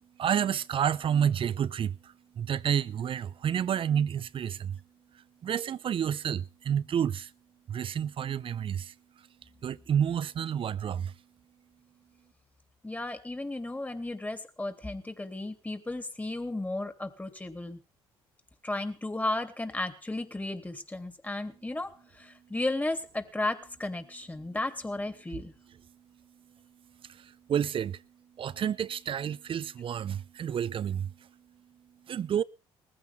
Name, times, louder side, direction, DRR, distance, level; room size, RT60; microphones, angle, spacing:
voice 1, 0.2-4.8 5.4-7.3 7.7-8.9 9.6-11.1 27.1-28.0 28.4-31.1 32.1-32.4, right 8 dB, 50° right, 0.8 m, -30 dB
voice 2, 12.8-17.8 18.6-25.5, left 2 dB, 15° left, 3.0 m, -34 dB
20.0 x 15.0 x 3.7 m
supercardioid pair, 65°, 12 cm